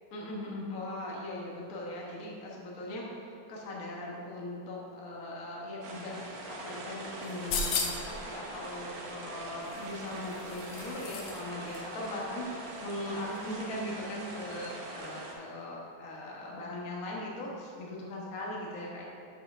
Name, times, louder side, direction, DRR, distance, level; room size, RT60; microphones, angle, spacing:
voice 1, 0.1-6.2 6.5-19.0, left 1 dB, 55° left, -4 dB, 0.9 m, -39 dB
sound 1, 5.8-15.3, right 2 dB, 75° right, 2.8 m, -43 dB
sound 2, 7.3-8.2 9.7-11.4 11.7-11.8, left 5 dB, 70° left, 2.0 m, -35 dB
7.4 x 5.6 x 6.0 m, 2.7 s
omnidirectional pair, 3.8 m